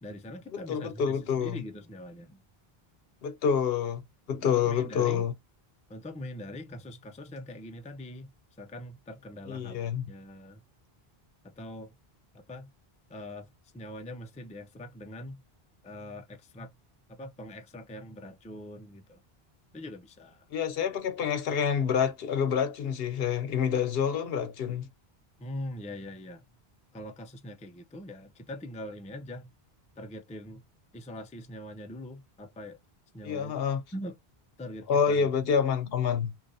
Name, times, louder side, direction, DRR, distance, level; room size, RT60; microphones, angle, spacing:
voice 1, 0.0-2.4 4.5-5.2 5.9-8.3 8.6-10.6 11.4-11.9 12.3-12.7 13.1-13.5 13.7-15.4 15.8-16.7 17.1-19.2 19.7-20.5 25.4-26.4 26.9-29.5 30.0-30.6 30.9-32.8 33.1-33.6 33.9-34.2 34.6-35.3, left 1 dB, 10° left, 0.3 m, -42 dB
voice 2, 0.5-1.6 3.2-5.3 9.5-10.1 20.5-24.9 33.2-33.8 34.9-36.3, left 7 dB, 70° left, 0.8 m, -28 dB
2.9 x 2.5 x 3.9 m
omnidirectional pair, 1.0 m